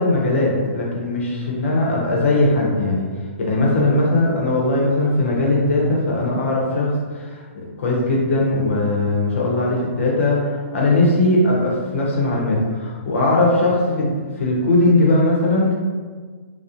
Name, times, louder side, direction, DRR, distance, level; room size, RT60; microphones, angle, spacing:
voice 1, 0.0-3.1 3.4-7.4 7.8-15.7, left 2 dB, 70° left, -3 dB, 0.7 m, -19 dB
2.4 x 2.0 x 2.7 m, 1.5 s
hypercardioid pair, 170°, 7 cm